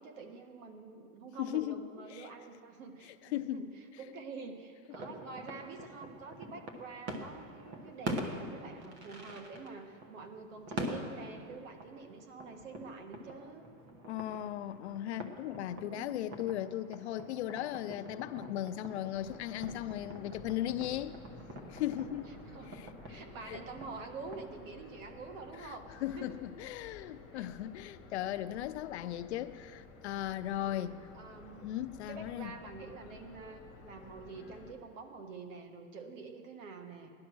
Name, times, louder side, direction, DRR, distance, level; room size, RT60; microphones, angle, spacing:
voice 1, 0.0-13.7 15.7-16.2 22.5-22.7 23.1-26.4 27.3-27.5 30.6-30.9 31.1-31.7 32.1-37.1, right 4 dB, 65° right, 5 dB, 1.8 m, -47 dB
voice 2, 1.4-1.8 2.1-2.3 3.0-3.7 14.1-21.2 21.7-22.3 22.7-22.9 23.5-23.6 25.6-25.7 26.0-31.0 31.6-32.5, left 12 dB, 50° left, 10 dB, 0.5 m, -37 dB
sound 1, 4.9-24.4, right 1 dB, 25° right, 1.1 m, -45 dB
sound 2, 19.1-34.7, left 4 dB, 5° left, 0.3 m, -53 dB
16.5 x 11.5 x 6.1 m, 2.2 s
supercardioid pair, 175°, 42 cm